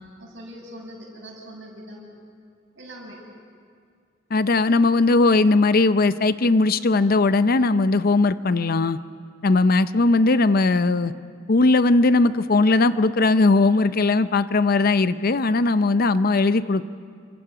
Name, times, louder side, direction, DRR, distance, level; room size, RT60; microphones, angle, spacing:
voice 1, 0.0-2.1 2.7-3.2, equal, 75° right, -2 dB, 6.8 m, -42 dB
voice 2, 4.3-9.0 9.4-11.1 11.5-16.8, left 3 dB, 50° left, 13 dB, 0.6 m, -19 dB
30.0 x 25.0 x 5.0 m, 2.2 s
head